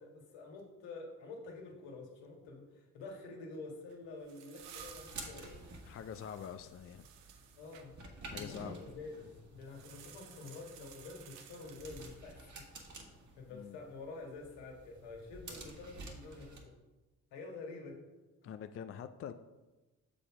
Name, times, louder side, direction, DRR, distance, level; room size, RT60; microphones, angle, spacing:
voice 1, 0.0-5.6 7.5-8.0 8.3-13.0 13.4-16.7 17.3-18.1, left 3 dB, 70° left, 1 dB, 1.8 m, -48 dB
sound 1, 3.9-7.9 9.6-12.5, right 8 dB, 85° right, 0.8 m, -56 dB
sound 2, 4.6-16.6, right 2 dB, 40° right, 1.7 m, -52 dB
voice 2, 5.9-7.1 8.3-8.8 13.5-13.8 18.4-19.3, left 8 dB, 35° left, 10 dB, 0.4 m, -45 dB
7.0 x 5.1 x 4.8 m, 1.1 s
hypercardioid pair, 50°, 44 cm